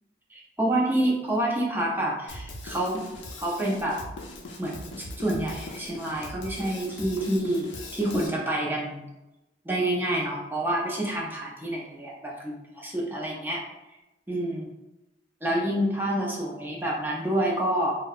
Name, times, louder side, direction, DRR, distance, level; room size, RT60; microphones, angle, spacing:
voice 1, 0.3-3.0 3.4-4.0 4.6-9.0 9.7-13.6 14.3-14.7 15.4-18.0, right 1 dB, 10° right, -3 dB, 0.4 m, -28 dB
Drum kit, 2.3-8.3, left 2 dB, 85° left, 0.4 m, -40 dB
2.6 x 2.0 x 2.3 m, 0.97 s
head